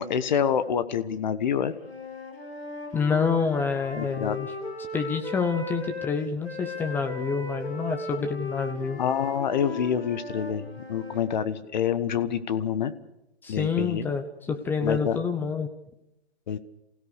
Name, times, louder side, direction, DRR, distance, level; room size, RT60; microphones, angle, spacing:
voice 1, 0.0-1.7 4.0-4.4 9.0-12.9 13.5-14.1 14.8-15.2 16.5-16.6, left 8 dB, 45° left, 12 dB, 1.3 m, -27 dB
Wind instrument woodwind instrument, 1.7-6.1 6.4-11.3, left 3 dB, 65° left, 6.8 m, -37 dB
voice 2, 2.9-4.5 4.9-9.0 13.4-15.7, left 5 dB, 5° left, 5 dB, 0.7 m, -27 dB
28.0 x 16.5 x 6.7 m, 0.89 s
figure-of-eight pair, 125°, 33 cm